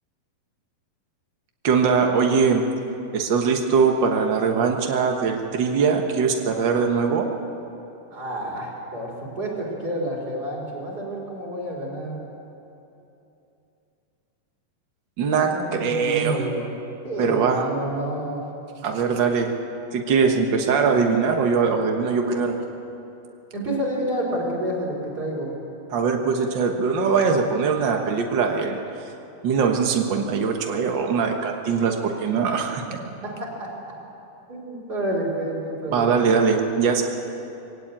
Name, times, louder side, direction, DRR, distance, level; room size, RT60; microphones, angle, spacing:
voice 1, 1.6-2.7 3.1-7.3 15.2-16.4 17.2-17.6 18.8-19.5 19.9-22.6 25.9-28.8 29.4-32.8 35.9-37.0, right 5 dB, 85° right, 2 dB, 1.0 m, -21 dB
voice 2, 8.1-12.2 15.4-16.7 17.0-18.4 23.5-25.5 33.2-33.7 34.5-36.3, right 1 dB, 25° right, -2 dB, 4.7 m, -29 dB
21.5 x 17.0 x 8.8 m, 2.9 s
omnidirectional pair, 4.2 m